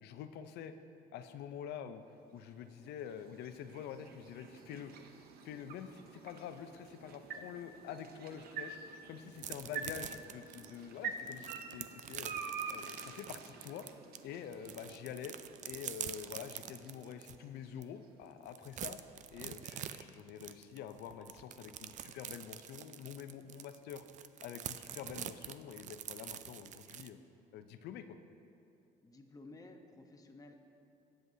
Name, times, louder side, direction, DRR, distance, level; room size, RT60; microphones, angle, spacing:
voice 1, 0.0-0.7 1.1-2.0 2.3-4.9 5.4-8.8 9.1-12.3 12.7-13.9 14.2-15.4 15.6-19.0 19.3-24.1 24.4-27.2 27.5-28.2, left 8 dB, 75° left, 9 dB, 0.6 m, -47 dB
sound 1, 2.2-18.4, right 5 dB, 65° right, 0.8 m, -48 dB
sound 2, 9.4-14.2 14.5-17.4 17.8-17.9 18.2-27.1, right 10 dB, 45° right, 0.4 m, -46 dB
voice 2, 29.0-30.6, left 2 dB, 20° left, 4 dB, 0.9 m, -54 dB
16.5 x 7.7 x 2.8 m, 2.7 s
cardioid pair, 110°, 17 cm